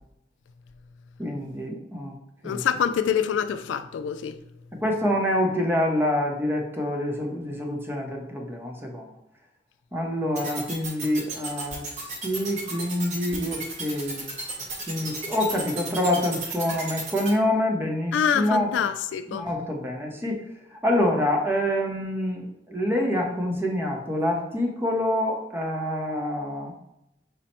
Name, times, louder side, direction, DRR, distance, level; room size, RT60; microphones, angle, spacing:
voice 1, 1.2-2.1 2.4-2.6 4.8-9.1 9.9-14.3 14.9-18.7 19.3-20.4 20.8-26.7, left 1 dB, 10° right, 0.7 m, -26 dB
voice 2, 2.4-4.3 18.1-19.4, left 8 dB, 80° left, 0.3 m, -25 dB
sound 1, 10.3-17.3, right 3 dB, 40° right, 0.9 m, -33 dB
5.2 x 2.0 x 4.2 m
head